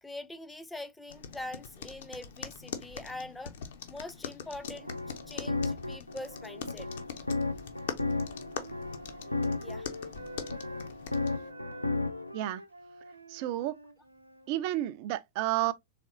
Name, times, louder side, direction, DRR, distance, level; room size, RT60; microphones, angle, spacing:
voice 1, 0.0-3.5 3.9-4.9 5.3-6.9 9.6-9.9, left 2 dB, 5° left, 0.5 m, -43 dB
sound 1, 1.1-11.5, left 7 dB, 60° left, 0.7 m, -43 dB
sound 2, 4.6-12.3, left 3 dB, 85° left, 0.4 m, -35 dB
Wind instrument woodwind instrument, 7.7-14.5, equal, 85° right, 0.7 m, -48 dB
voice 2, 13.3-13.8 14.5-15.7, right 14 dB, 45° right, 0.3 m, -31 dB
4.1 x 3.4 x 2.6 m
figure-of-eight pair, 90°, 0 cm